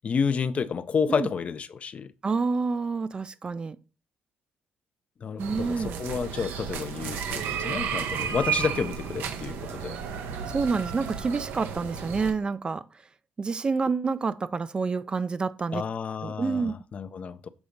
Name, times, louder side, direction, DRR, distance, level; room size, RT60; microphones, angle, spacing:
voice 1, 0.0-2.1 5.2-10.0 15.7-17.5, left 6 dB, 40° left, 0.5 m, -30 dB
voice 2, 2.2-3.8 5.4-6.0 10.5-12.8 13.4-15.8 16.2-16.7, right 4 dB, 25° right, 0.4 m, -28 dB
sound 1, 5.4-12.3, right 7 dB, 85° right, 0.9 m, -33 dB
7.1 x 4.1 x 5.0 m
cardioid pair, 120°, 3 cm